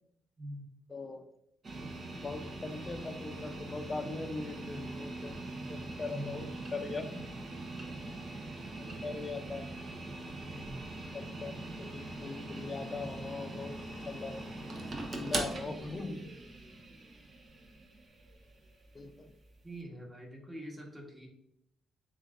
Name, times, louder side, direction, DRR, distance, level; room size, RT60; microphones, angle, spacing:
voice 1, 0.4-0.7 6.1-6.4 10.5-10.8 19.6-21.3, right 1 dB, 10° right, 0 dB, 1.2 m, -44 dB
voice 2, 0.9-1.3 2.2-5.4 5.7-7.1 8.8-9.7 11.1-11.5 11.8-14.4 15.1-16.3 18.9-19.3, left 3 dB, 30° left, 7 dB, 0.6 m, -40 dB
sound 1, 1.6-19.8, right 2 dB, 40° right, 0.9 m, -42 dB
6.8 x 2.5 x 2.5 m, 0.77 s
cardioid pair, 90°, 0 cm